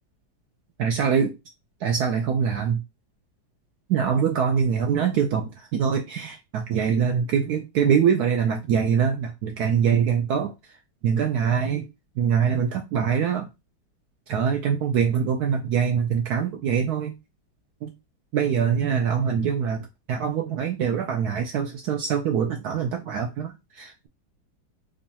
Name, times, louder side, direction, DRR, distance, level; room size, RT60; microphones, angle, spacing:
voice 1, 0.8-1.4 1.8-2.8 3.9-10.5 11.0-11.9 12.2-13.5 14.3-17.1 17.8-17.9 18.3-24.1, right 7 dB, 90° right, 0.8 m, -24 dB
5.0 x 2.3 x 2.8 m
omnidirectional pair, 2.2 m